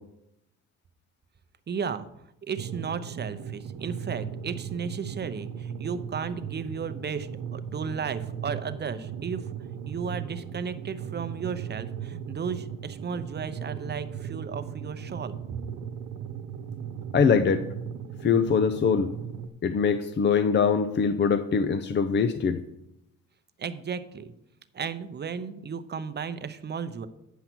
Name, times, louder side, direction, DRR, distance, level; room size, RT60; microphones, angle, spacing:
voice 1, 1.7-2.1 2.4-9.5 9.9-15.4 23.6-24.3 24.7-27.1, right 6 dB, 35° right, 11 dB, 0.7 m, -34 dB
sound 1, 2.6-19.5, right 8 dB, 80° right, 0.9 m, -37 dB
voice 2, 17.1-17.6 18.2-19.1 19.6-22.6, left 6 dB, 40° left, 10 dB, 0.6 m, -23 dB
9.2 x 5.6 x 6.1 m, 0.83 s
cardioid pair, 90°, 30 cm